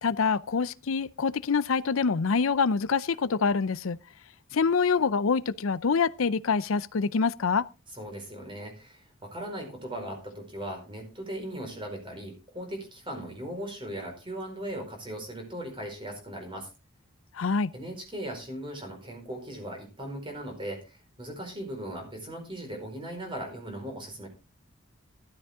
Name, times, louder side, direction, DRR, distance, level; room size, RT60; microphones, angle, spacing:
voice 1, 0.0-4.0 4.5-7.7 17.3-17.7, left 5 dB, 70° left, 0.6 m, -25 dB
voice 2, 7.9-16.7 17.7-24.3, right 1 dB, 25° right, 4.7 m, -38 dB
13.0 x 12.0 x 3.6 m
head